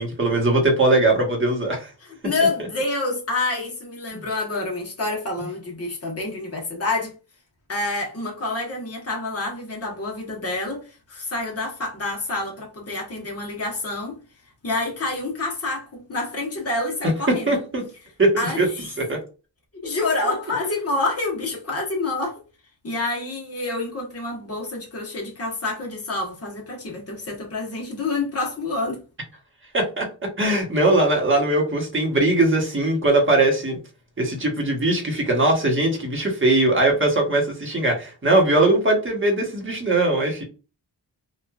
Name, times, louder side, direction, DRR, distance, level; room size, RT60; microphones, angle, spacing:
voice 1, 0.0-1.9 4.1-4.2 17.3-17.8 18.2-18.7 19.0-19.2 29.7-33.8 34.2-40.4, right 2 dB, 25° right, 1.1 m, -20 dB
voice 2, 2.2-7.1 7.7-14.2 14.6-17.5 18.4-18.9 19.7-22.4 22.8-29.0, left 2 dB, 35° left, 1.1 m, -27 dB
2.9 x 2.4 x 2.3 m
wide cardioid pair, 100°, 44 cm